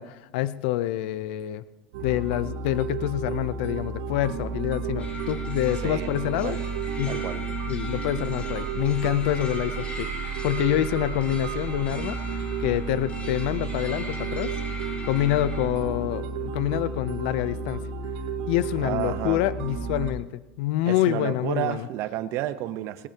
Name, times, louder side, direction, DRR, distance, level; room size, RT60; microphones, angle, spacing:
voice 1, 0.0-1.6 2.0-6.6 7.0-7.2 7.7-14.5 15.0-17.8 18.5-20.3 20.6-21.9, left 14 dB, 75° left, 0.6 m, -27 dB
sound 1, 1.9-20.1, right 6 dB, 80° right, 1.9 m, -32 dB
sound 2, 5.0-15.7, left 2 dB, 25° left, 2.8 m, -39 dB
voice 2, 7.1-7.4 16.4-16.5 18.8-19.4 20.9-23.1, right 13 dB, 55° right, 0.9 m, -31 dB
19.0 x 18.5 x 2.9 m
supercardioid pair, 130°, 6 cm